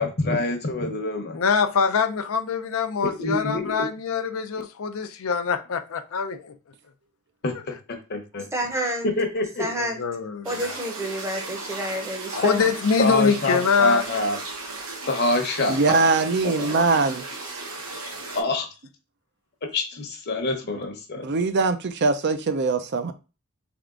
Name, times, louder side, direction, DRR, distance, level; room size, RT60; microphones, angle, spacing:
voice 1, 0.0-1.4 3.0-3.9 7.4-8.5 9.0-9.7 13.0-14.4 15.1-15.9 16.4-16.8 17.9-18.7 19.6-21.3, left 2 dB, 50° left, 0.9 m, -26 dB
voice 2, 1.3-6.5 9.8-10.7 12.3-14.0, left 5 dB, 70° left, 0.5 m, -24 dB
voice 3, 8.5-9.1 9.6-10.0 10.4-12.7, equal, 15° right, 0.7 m, -29 dB
sound 1, 10.4-18.4, right 3 dB, 80° right, 1.2 m, -36 dB
voice 4, 15.7-17.2 21.2-23.1, right 3 dB, 55° right, 0.5 m, -22 dB
3.5 x 3.5 x 3.7 m
head